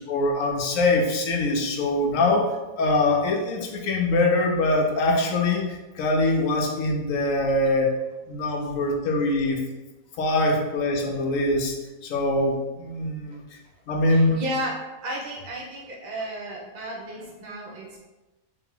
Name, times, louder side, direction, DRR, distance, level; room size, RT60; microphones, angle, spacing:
voice 1, 0.1-2.5 2.8-8.0 8.3-9.6 10.2-11.8 12.0-13.4 13.9-14.4, left 2 dB, 70° left, 2 dB, 1.0 m, -23 dB
voice 2, 14.1-14.8 15.0-18.0, right 1 dB, 40° right, -3 dB, 0.8 m, -33 dB
3.4 x 2.8 x 3.7 m, 1.1 s
omnidirectional pair, 1.5 m